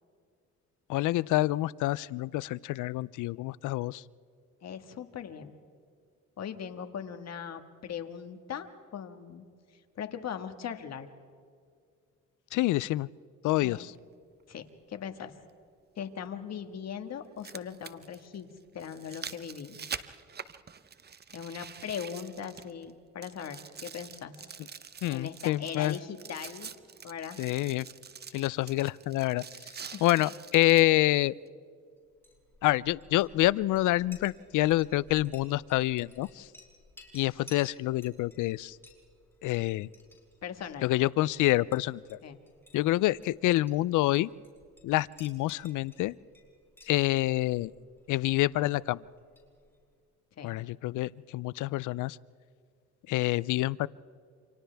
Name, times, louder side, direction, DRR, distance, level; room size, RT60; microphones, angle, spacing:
voice 1, 0.9-4.0 12.5-13.1 13.4-13.9 25.0-26.0 27.4-27.9 28.3-29.7 30.0-31.3 32.6-36.5 37.1-38.8 39.4-39.9 40.8-42.2 42.7-44.3 44.8-46.1 46.9-47.7 48.1-49.0 50.4-52.2 53.1-53.9, left 17 dB, 80° left, 21 dB, 0.4 m, -27 dB
voice 2, 4.6-5.6 6.4-9.4 9.7-11.1 13.6-13.9 14.5-15.3 16.0-18.5 18.7-19.8 21.3-24.4 25.1-26.7 27.0-27.4 29.9-30.1 40.4-40.9 42.2-42.4 50.4-50.6, left 8 dB, 60° left, 7 dB, 1.7 m, -40 dB
sound 1, 13.9-14.0 16.0-16.1 17.2-22.9 23.2-30.9 31.5-31.6, right 6 dB, 35° right, 0.8 m, -45 dB
Chink clink, 32.1-49.9, left 2 dB, 10° left, 5.7 m, -58 dB
29.0 x 26.5 x 3.4 m, 2.2 s
cardioid pair, 90°, 30 cm